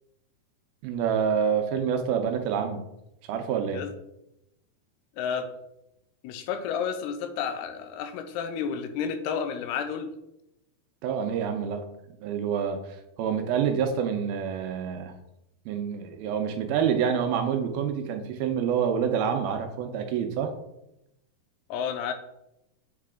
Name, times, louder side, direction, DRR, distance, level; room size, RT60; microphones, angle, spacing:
voice 1, 0.8-2.8 3.3-3.8 11.0-11.8 12.2-15.1 15.7-20.5, right 7 dB, 85° right, 6 dB, 2.5 m, -27 dB
voice 2, 5.2-5.5 6.2-10.1 21.7-22.1, left 7 dB, 90° left, 8 dB, 2.8 m, -31 dB
7.5 x 5.6 x 3.7 m, 0.86 s
omnidirectional pair, 4.5 m